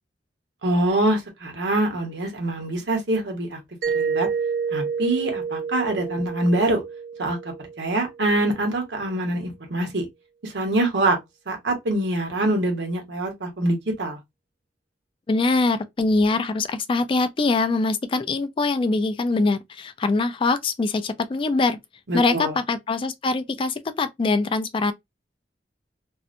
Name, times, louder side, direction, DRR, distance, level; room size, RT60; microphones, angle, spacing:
voice 1, 0.6-3.6 3.9-4.3 4.7-6.8 7.2-7.4 7.8-10.0 10.4-11.2 11.5-14.2 22.1-22.6, right 1 dB, 80° right, 1.0 m, -24 dB
Mallet percussion, 3.8-8.4, right 6 dB, 55° right, 0.3 m, -29 dB
voice 2, 15.3-21.8 22.1-24.9, left 3 dB, 30° left, 0.3 m, -23 dB
2.6 x 2.1 x 2.5 m
head